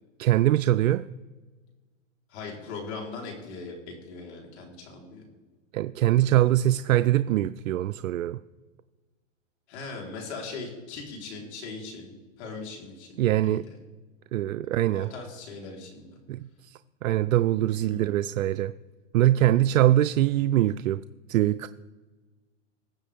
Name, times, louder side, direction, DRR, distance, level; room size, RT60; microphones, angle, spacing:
voice 1, 0.2-1.1 5.7-8.4 13.2-13.6 14.3-15.1 16.3-18.7 19.1-21.0 21.3-21.7, right 13 dB, 85° right, 12 dB, 0.5 m, -23 dB
voice 2, 2.3-5.2 9.7-13.8 14.9-16.2 17.7-18.1, left 4 dB, 55° left, 0 dB, 3.9 m, -40 dB
21.0 x 7.4 x 3.5 m, 1.3 s
hypercardioid pair, 145°, 39 cm